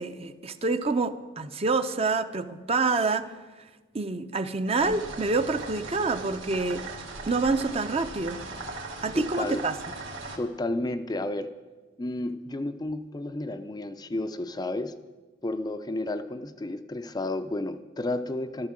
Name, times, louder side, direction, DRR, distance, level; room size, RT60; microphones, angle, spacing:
voice 1, 0.0-3.3 3.9-6.9 7.3-8.4 9.0-9.7, right 3 dB, 30° right, 10 dB, 0.6 m, -27 dB
sound 1, 4.8-10.4, right 3 dB, 70° right, 2.5 m, -39 dB
voice 2, 9.1-9.6 10.4-11.5 12.0-14.9 15.4-18.7, left 2 dB, 20° left, 9 dB, 0.5 m, -32 dB
12.0 x 12.0 x 7.4 m, 1.3 s
head